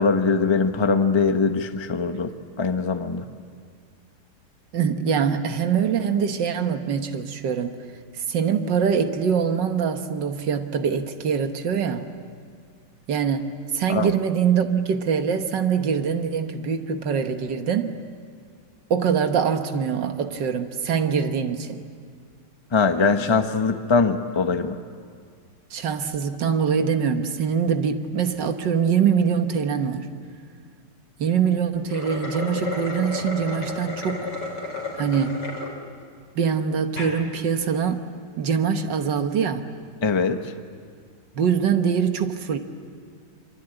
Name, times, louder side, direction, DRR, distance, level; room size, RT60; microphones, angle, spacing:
voice 1, 0.0-2.3 2.6-3.3 13.9-14.1 22.7-24.8 40.0-40.4, left 4 dB, 20° left, 7 dB, 0.8 m, -21 dB
voice 2, 4.7-7.8 8.2-12.1 13.1-17.9 18.9-21.8 25.7-30.1 31.2-34.3 35.0-35.4 36.4-38.0 38.4-39.7 41.4-42.6, right 7 dB, 90° right, 7 dB, 1.9 m, -23 dB
sound 1, 31.8-35.7 36.2-36.3 36.8-37.2, left 3 dB, 85° left, 4.2 m, -32 dB
25.0 x 24.0 x 9.0 m, 2.1 s
omnidirectional pair, 1.9 m